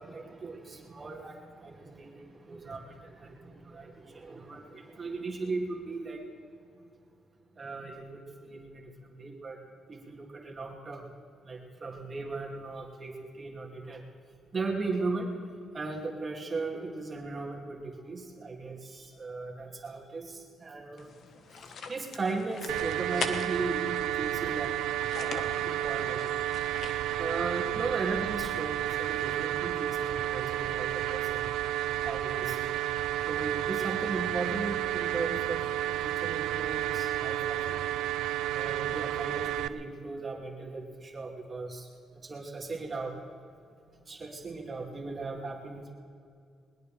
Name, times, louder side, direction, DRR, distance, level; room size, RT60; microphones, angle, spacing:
voice 1, 0.0-6.2 7.6-9.6 9.9-11.1 11.4-14.1 14.5-15.3 15.7-21.1 21.9-23.9 24.2-24.8 25.2-26.2 27.2-31.4 32.0-32.8 33.3-35.6 36.0-37.8 38.5-41.9 42.2-43.1 44.1-45.9, right 3 dB, 35° right, 0 dB, 2.5 m, -37 dB
sound 1, 21.0-26.9, left 5 dB, 65° left, 1.4 m, -42 dB
sound 2, 22.7-39.7, right 13 dB, 85° right, 0.5 m, -31 dB
20.5 x 20.5 x 3.4 m, 2.3 s
cardioid pair, 90°, 0 cm